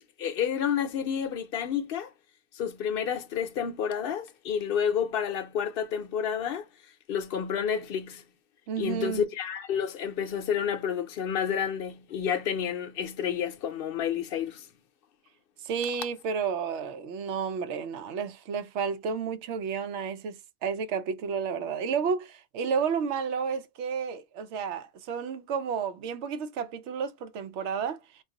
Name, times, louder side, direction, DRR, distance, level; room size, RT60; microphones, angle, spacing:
voice 1, 0.2-2.1 2.5-6.7 7.1-8.2 8.8-14.7, left 8 dB, 65° left, 0.7 m, -30 dB
voice 2, 8.7-9.3 15.6-28.0, right 6 dB, 90° right, 0.9 m, -31 dB
2.3 x 2.3 x 3.7 m
omnidirectional pair, 1.1 m